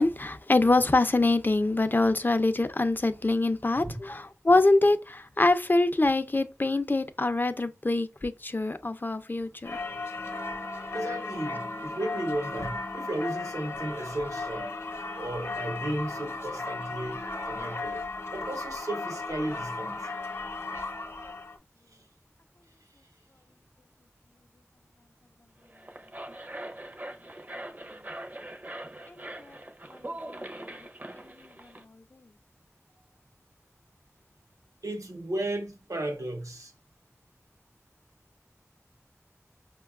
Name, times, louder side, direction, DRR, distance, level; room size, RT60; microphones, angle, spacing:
voice 1, 0.0-9.8 29.1-29.6 29.9-30.0 30.3-30.4 31.2-31.7 32.1-32.2, left 2 dB, 40° left, 0.3 m, -25 dB
Singing / Church bell, 9.6-21.6, left 3 dB, 60° left, 0.7 m, -36 dB
voice 2, 10.9-14.8 15.1-18.1 18.3-20.1 21.9-22.1 22.9-23.1 34.8-36.7, right 1 dB, 85° right, 0.6 m, -34 dB
sound 1, 25.6-31.8, right 1 dB, 35° right, 0.5 m, -42 dB
5.2 x 2.2 x 2.3 m
wide cardioid pair, 50°, 5 cm